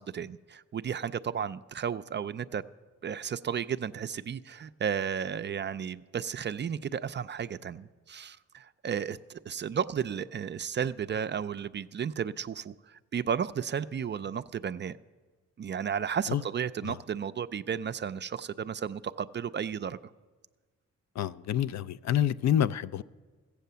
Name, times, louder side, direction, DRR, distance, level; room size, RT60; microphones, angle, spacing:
voice 1, 0.0-2.6 3.0-15.0 15.6-20.0, right 7 dB, 35° right, 0.4 m, -33 dB
voice 2, 21.2-23.0, left 10 dB, 60° left, 0.4 m, -28 dB
14.5 x 8.3 x 6.8 m
cardioid pair, 65°, 31 cm